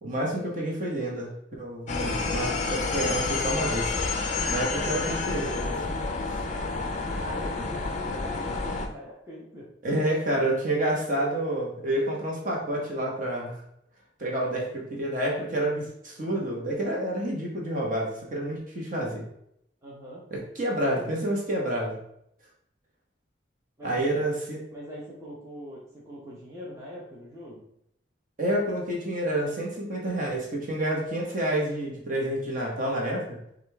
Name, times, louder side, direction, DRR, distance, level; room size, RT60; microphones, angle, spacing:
voice 1, 0.0-4.0 4.5-5.9 9.8-13.6 14.2-19.2 20.3-22.0 23.8-24.6 28.4-33.4, right 1 dB, 40° right, -3 dB, 1.1 m, -29 dB
sound 1, 1.9-8.9, left 3 dB, 40° left, 0.4 m, -29 dB
voice 2, 7.2-9.7 19.8-20.2 20.7-21.2 23.8-24.2 24.7-27.6, equal, 15° right, -7 dB, 0.8 m, -42 dB
5.1 x 2.5 x 3.4 m, 0.74 s
head